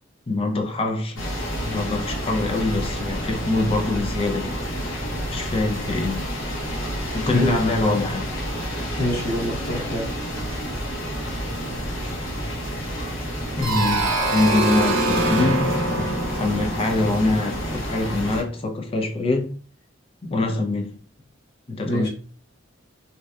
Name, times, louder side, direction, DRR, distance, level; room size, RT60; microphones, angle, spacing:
voice 1, 0.3-1.3 1.6-4.6 5.3-6.3 7.1-8.3 13.6-19.5 20.2-21.0 21.7-22.1, left 2 dB, 30° left, 0.4 m, -24 dB
sound 1, 1.2-18.4, equal, 85° left, 0.8 m, -30 dB
voice 2, 7.3-7.6 9.0-10.1 21.8-22.1, left 1 dB, 50° left, 0.8 m, -25 dB
sound 2, 13.6-18.3, right 2 dB, 75° right, 0.6 m, -24 dB
2.6 x 2.1 x 2.2 m
head